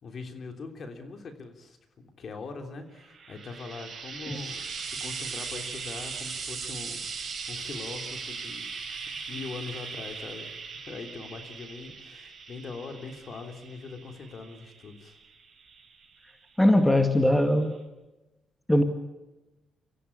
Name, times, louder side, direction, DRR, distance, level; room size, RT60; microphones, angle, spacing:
voice 1, 0.0-8.7 9.1-15.2, left 4 dB, 50° left, 5 dB, 3.3 m, -42 dB
Frying (food), 3.0-16.4 17.4-17.5, right 5 dB, 45° right, 5.8 m, -39 dB
voice 2, 16.6-17.7 18.7-18.8, left 1 dB, 10° left, 6 dB, 2.1 m, -20 dB
26.0 x 15.0 x 9.8 m, 1.1 s
cardioid pair, 90°, 0 cm